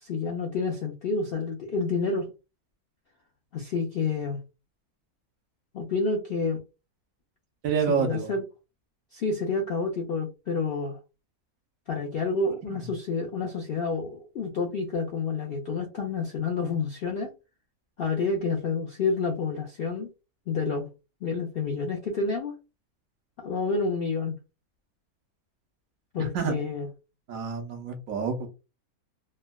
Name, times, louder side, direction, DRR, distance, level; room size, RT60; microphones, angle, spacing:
voice 1, 0.0-2.3 3.5-4.4 5.7-6.6 7.9-8.4 9.1-11.0 11.9-17.3 18.0-20.1 20.5-20.9 21.2-22.6 23.4-24.3 26.1-26.9, left 4 dB, 65° left, 1 dB, 0.5 m, -29 dB
voice 2, 7.6-8.3 26.2-26.5 27.3-28.5, right 6 dB, 70° right, 5 dB, 1.0 m, -28 dB
3.4 x 2.1 x 2.2 m, 0.28 s
omnidirectional pair, 1.5 m